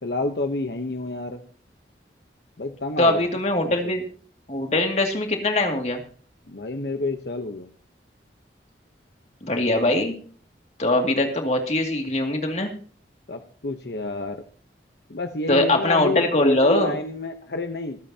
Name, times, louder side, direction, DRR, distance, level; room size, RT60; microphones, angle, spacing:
voice 1, 0.0-1.4 2.6-3.3 3.6-3.9 6.5-7.7 13.3-14.4 15.1-18.0, left 3 dB, 65° left, 5 dB, 1.0 m, -29 dB
voice 2, 3.0-4.0 4.5-6.0 9.4-10.2 10.8-12.7 15.5-16.9, left 1 dB, 40° left, 3 dB, 2.4 m, -22 dB
25.5 x 8.8 x 2.9 m, 0.43 s
head